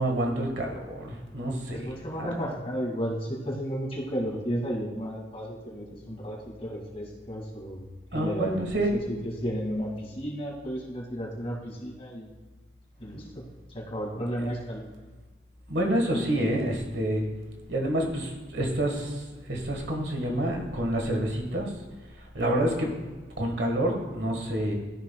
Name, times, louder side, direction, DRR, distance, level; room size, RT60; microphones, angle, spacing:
voice 1, 0.0-1.9 2.4-2.5 8.1-8.9 15.7-17.2 17.7-19.2 19.5-21.7 22.3-22.9 23.4-24.7, right 1 dB, 75° right, 1 dB, 1.5 m, -28 dB
voice 2, 1.7-7.8 8.1-9.0 9.4-12.3 13.0-13.4 13.7-14.9, equal, 35° left, -2 dB, 2.1 m, -33 dB
13.0 x 5.6 x 2.3 m, 1.3 s
head